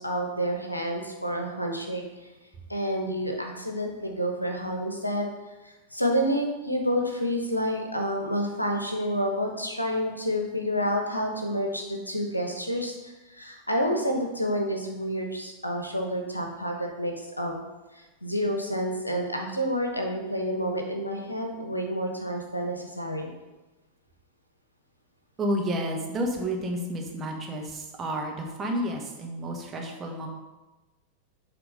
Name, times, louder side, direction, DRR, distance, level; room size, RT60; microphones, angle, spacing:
voice 1, 0.0-2.3 2.7-17.6 17.9-23.3, equal, 85° left, 2 dB, 1.0 m, -29 dB
voice 2, 25.4-30.3, equal, 20° right, 0 dB, 1.3 m, -30 dB
7.9 x 3.7 x 5.2 m, 1.1 s
figure-of-eight pair, 90°, 0 cm